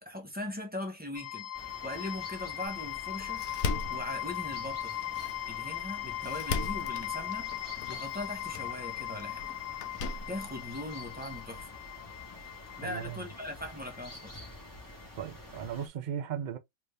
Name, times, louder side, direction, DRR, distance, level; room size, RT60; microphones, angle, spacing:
voice 1, 0.0-1.5 1.8-3.4 3.9-4.9 5.5-7.5 7.9-9.4 10.3-11.7 12.8-14.3, left 1 dB, 10° right, 0.7 m, -40 dB
sound 1, 1.1-15.0, left 13 dB, 60° left, 0.6 m, -39 dB
sound 2, 1.5-15.9, left 1 dB, 15° left, 1.1 m, -49 dB
Door, 2.7-11.6, left 4 dB, 75° left, 1.0 m, -40 dB
voice 2, 12.8-13.2 15.2-16.6, right 9 dB, 65° right, 0.4 m, -37 dB
3.4 x 2.6 x 3.3 m
omnidirectional pair, 1.5 m